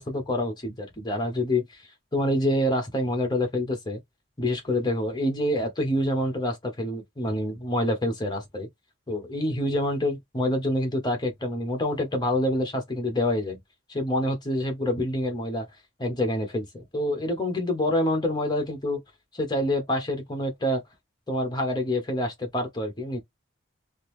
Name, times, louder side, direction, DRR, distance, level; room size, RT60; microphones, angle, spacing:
voice 1, 0.0-1.6 2.1-4.0 4.4-8.7 9.1-13.6 13.9-15.7 16.0-19.0 19.3-20.8 21.3-23.2, left 1 dB, 20° left, 1.1 m, -27 dB
3.8 x 2.0 x 3.1 m
head